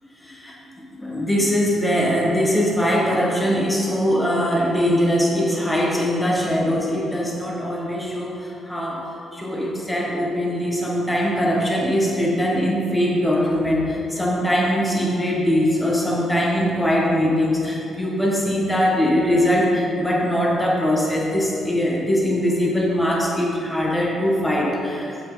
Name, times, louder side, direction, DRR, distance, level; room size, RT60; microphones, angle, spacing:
voice 1, 0.2-25.1, equal, 10° left, -3 dB, 1.5 m, -21 dB
7.9 x 5.8 x 3.9 m, 2.7 s
cardioid pair, 90°, 0 cm